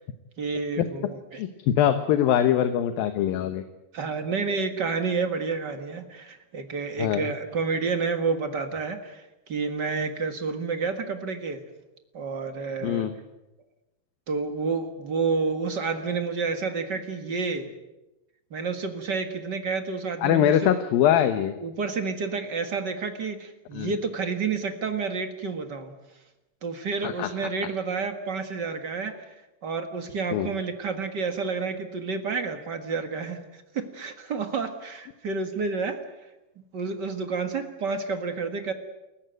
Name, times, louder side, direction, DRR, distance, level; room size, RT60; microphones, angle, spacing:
voice 1, 0.4-1.4 3.9-11.6 12.1-13.1 14.3-17.7 18.5-20.7 21.6-25.9 26.6-29.3 29.6-36.0 36.7-38.7, right 4 dB, 50° right, 7 dB, 1.3 m, -30 dB
voice 2, 1.3-3.6 7.0-7.3 12.8-13.1 20.2-21.5 23.7-23.9 27.0-27.3 30.3-30.5, left 10 dB, 75° left, 9 dB, 2.8 m, -23 dB
29.0 x 15.0 x 9.1 m, 1.0 s
omnidirectional pair, 4.4 m